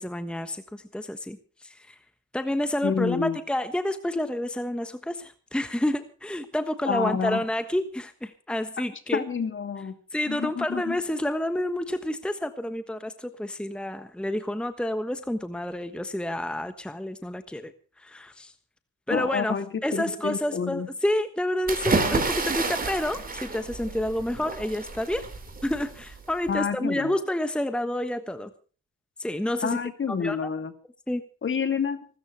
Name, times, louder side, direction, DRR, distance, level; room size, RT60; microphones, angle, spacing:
voice 1, 0.0-1.9 2.3-9.2 10.1-17.7 18.0-18.5 19.1-19.6 19.8-25.3 25.6-28.5 29.2-29.8 30.1-30.5 31.1-31.2, left 1 dB, 5° left, 10 dB, 1.3 m, -29 dB
voice 2, 2.8-3.4 6.9-7.4 9.1-10.0 10.3-11.0 19.1-20.9 26.5-27.1 29.6-30.7 31.4-32.0, left 6 dB, 40° left, 9 dB, 2.7 m, -28 dB
sound 1, 21.7-26.5, right 3 dB, 30° right, 4.7 m, -30 dB
25.5 x 13.5 x 3.3 m, 0.38 s
cardioid pair, 90°, 30 cm